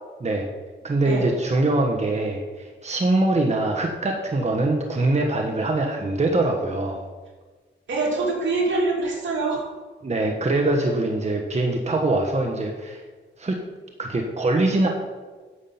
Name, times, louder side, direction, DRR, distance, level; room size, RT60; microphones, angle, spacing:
voice 1, 0.8-7.1 10.0-13.0 13.4-13.6 14.0-14.9, right 2 dB, 35° right, 2 dB, 1.2 m, -23 dB
voice 2, 7.9-9.6, right 3 dB, 75° right, -1 dB, 2.7 m, -24 dB
9.9 x 7.2 x 5.8 m, 1.4 s
wide cardioid pair, 95°, 20 cm